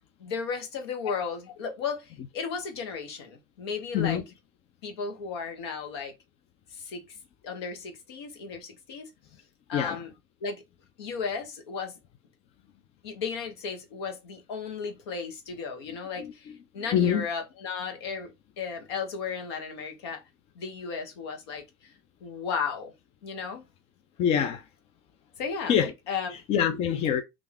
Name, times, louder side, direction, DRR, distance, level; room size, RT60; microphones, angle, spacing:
voice 1, 0.2-4.2 4.8-6.1 6.7-7.0 7.4-9.1 9.7-10.1 10.4-10.6 11.0-12.0 13.0-20.2 20.6-21.6 22.2-22.9 23.2-23.6 25.4-25.8 26.1-26.4, left 5 dB, 85° left, 1.0 m, -34 dB
voice 2, 3.9-4.2 9.7-10.0 15.9-16.3 16.9-17.2 24.2-24.6 25.7-25.9 26.5-27.2, left 9 dB, 50° left, 0.5 m, -25 dB
3.3 x 2.5 x 3.5 m
supercardioid pair, 95°, 13 cm